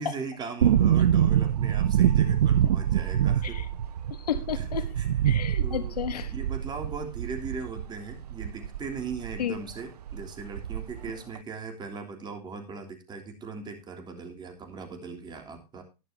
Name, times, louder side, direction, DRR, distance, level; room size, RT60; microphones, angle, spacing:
voice 1, 0.0-3.6 4.6-4.7 5.0-5.1 5.6-5.9 6.3-15.8, right 4 dB, 20° right, 5 dB, 3.2 m, -39 dB
sound 1, 0.6-9.4 9.7-9.8 10.1-11.1 11.4-11.5, right 10 dB, 80° right, 0.7 m, -25 dB
voice 2, 4.1-4.9 5.2-6.3 9.4-9.5, left 9 dB, 75° left, 12 dB, 1.3 m, -32 dB
20.0 x 6.9 x 2.8 m, 0.29 s
hypercardioid pair, 115°, 20 cm